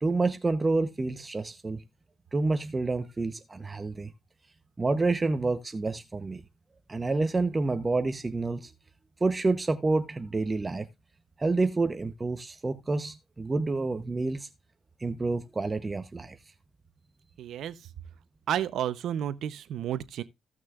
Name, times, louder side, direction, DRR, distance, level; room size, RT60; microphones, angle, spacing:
voice 1, 0.0-1.8 2.3-4.1 4.8-6.4 6.9-8.7 9.2-10.9 11.4-14.5 15.0-16.4, right 3 dB, 25° right, 0.8 m, -28 dB
voice 2, 17.4-17.8 18.5-20.2, right 10 dB, 75° right, 0.7 m, -31 dB
16.5 x 6.1 x 2.4 m
cardioid pair, 90°, 0 cm